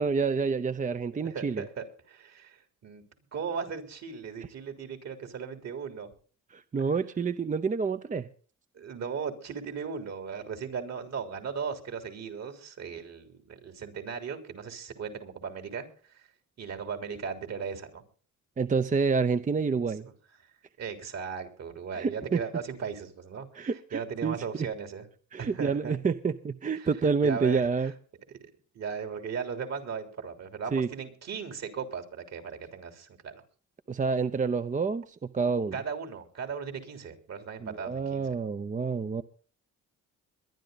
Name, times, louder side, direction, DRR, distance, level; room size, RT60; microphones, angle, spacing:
voice 1, 0.0-1.6 6.5-8.3 18.6-20.1 21.9-22.4 23.5-24.4 25.3-27.9 30.7-30.9 33.9-35.8 37.6-39.2, right 5 dB, 25° right, 0.7 m, -28 dB
voice 2, 1.1-3.0 3.3-6.1 8.7-16.2 16.6-18.0 20.8-25.1 25.4-26.0 26.7-26.9 27.2-27.9 28.8-33.3 35.7-38.4, right 6 dB, 60° right, 3.5 m, -37 dB
22.5 x 10.5 x 4.0 m
cardioid pair, 90°, 30 cm